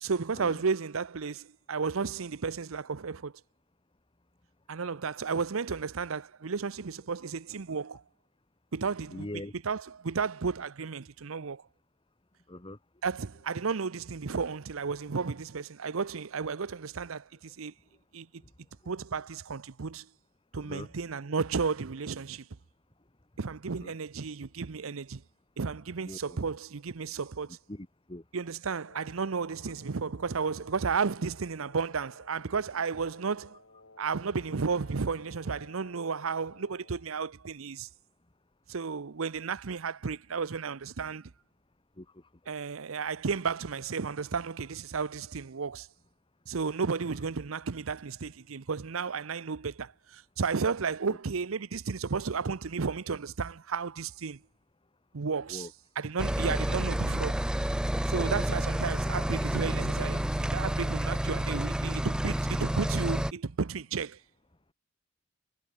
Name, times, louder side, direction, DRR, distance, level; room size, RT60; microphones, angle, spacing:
voice 1, 0.0-3.3 4.7-8.0 8.7-11.6 13.0-17.7 18.1-18.4 18.9-20.1 20.5-22.5 23.4-25.2 25.6-27.6 28.3-33.6 34.0-37.9 38.7-41.3 42.5-45.9 46.5-54.4 55.1-55.7 56.0-57.4 58.1-64.2, right 5 dB, 90° right, 0.7 m, -33 dB
voice 2, 9.1-9.5 12.5-12.8 20.5-20.9 23.8-23.9 26.0-26.4 27.7-28.2 42.0-42.2 51.1-51.2 55.5-55.7 56.4-56.6, left 1 dB, 25° left, 1.7 m, -42 dB
Wind instrument woodwind instrument, 28.8-37.1, left 2 dB, 65° left, 6.7 m, -56 dB
sound 1, 56.2-63.3, equal, 5° right, 0.4 m, -29 dB
head